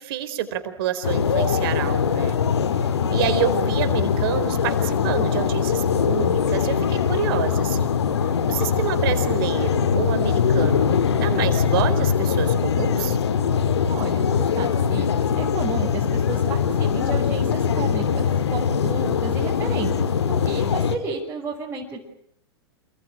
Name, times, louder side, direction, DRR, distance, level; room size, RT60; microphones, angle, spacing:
voice 1, 0.0-2.4 3.1-8.0 8.5-13.2, right 10 dB, 60° right, 9 dB, 4.4 m, -28 dB
sound 1, 1.0-21.0, left 7 dB, 85° left, 2.0 m, -22 dB
voice 2, 13.9-22.0, right 4 dB, 15° right, -4 dB, 6.1 m, -32 dB
28.5 x 21.5 x 9.1 m, 0.67 s
hypercardioid pair, 110°, 14 cm